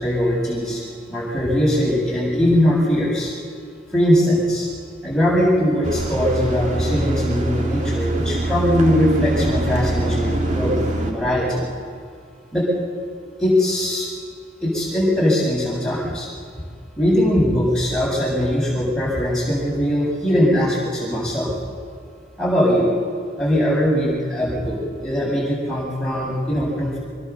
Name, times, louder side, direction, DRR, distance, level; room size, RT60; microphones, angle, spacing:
voice 1, 0.0-3.3 3.9-4.7 5.0-11.6 12.5-12.7 13.4-14.1 14.6-16.3 17.0-21.5 22.4-22.9 23.4-27.0, equal, 5° left, -6 dB, 7.7 m, -20 dB
sound 1, 5.8-11.1, right 2 dB, 40° right, 2.3 m, -24 dB
25.0 x 21.0 x 7.2 m, 2.2 s
head